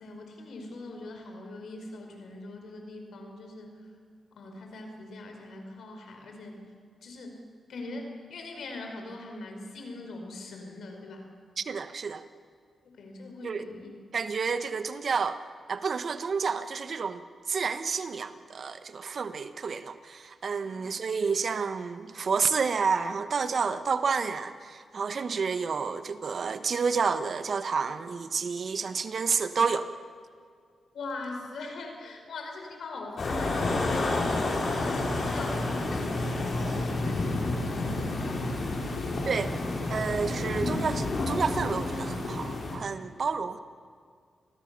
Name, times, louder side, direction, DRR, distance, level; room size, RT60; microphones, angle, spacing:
voice 1, 0.0-3.8 4.4-6.6 7.0-7.4 7.7-11.2 12.9-13.9 20.6-20.8 25.3-25.4 30.9-38.6, left 2 dB, 75° left, 3 dB, 4.9 m, -41 dB
voice 2, 11.6-12.2 13.4-13.7 14.1-15.4 15.7-17.2 17.5-29.9 39.3-39.5 39.9-43.6, right 5 dB, 60° right, 11 dB, 1.2 m, -30 dB
sound 1, 33.2-42.8, left 2 dB, 60° left, 6.0 m, -30 dB
28.0 x 20.5 x 6.9 m, 2.1 s
supercardioid pair, 50°, 0 cm